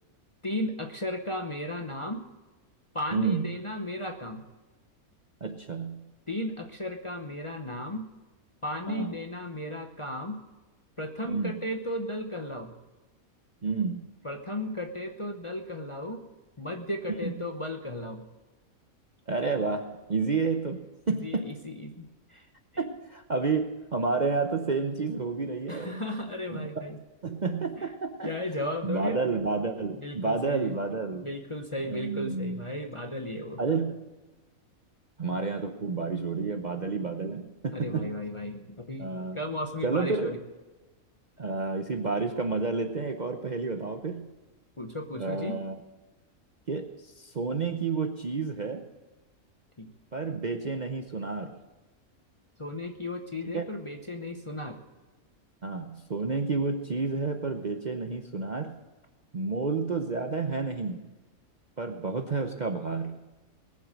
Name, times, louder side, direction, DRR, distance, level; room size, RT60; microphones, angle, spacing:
voice 1, 0.4-2.3 2.9-4.4 6.3-8.0 8.6-10.4 11.0-12.7 14.2-16.2 16.6-18.3 21.1-22.5 22.7-22.8 25.7-27.0 27.8-27.9 28.2-29.2 30.0-30.8 31.2-33.6 37.7-40.4 44.8-45.6 49.8-49.9 52.6-54.8, left 1 dB, 25° left, 3 dB, 0.8 m, -35 dB
voice 2, 3.1-3.6 5.4-6.1 8.9-9.1 11.2-11.5 13.6-14.1 17.2-17.3 19.3-21.5 22.8-26.0 26.5-26.7 27.2-28.3 28.8-31.3 31.8-32.7 33.6-34.1 35.2-38.1 39.0-39.4 39.8-40.4 41.4-44.3 45.1-45.8 46.7-48.8 50.1-51.6 53.5-53.6 55.6-58.8 59.3-61.0 61.8-63.2, right 4 dB, 40° right, 5 dB, 0.8 m, -30 dB
20.0 x 7.4 x 6.4 m, 1.2 s
omnidirectional pair, 1.5 m